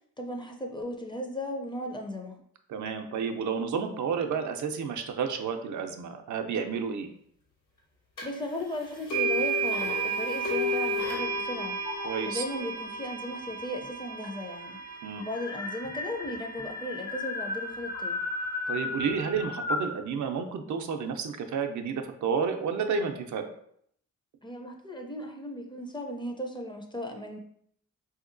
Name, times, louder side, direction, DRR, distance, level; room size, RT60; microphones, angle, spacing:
voice 1, 0.2-2.4 8.2-11.8 12.2-14.8 15.2-18.2 24.4-27.4, left 1 dB, 15° left, 2 dB, 0.4 m, -36 dB
voice 2, 2.7-7.1 12.0-12.4 15.0-15.2 18.7-23.5, right 6 dB, 70° right, 5 dB, 0.5 m, -31 dB
sound 1, 8.2-8.3 9.1-17.1, right 2 dB, 90° left, 1.4 m, -32 dB
sound 2, 9.9-11.3 11.8-12.5 13.5-13.6 13.8-13.9 14.2-20.0, left 3 dB, 70° left, 0.6 m, -35 dB
3.6 x 2.7 x 2.5 m, 0.67 s
cardioid pair, 95°, 30 cm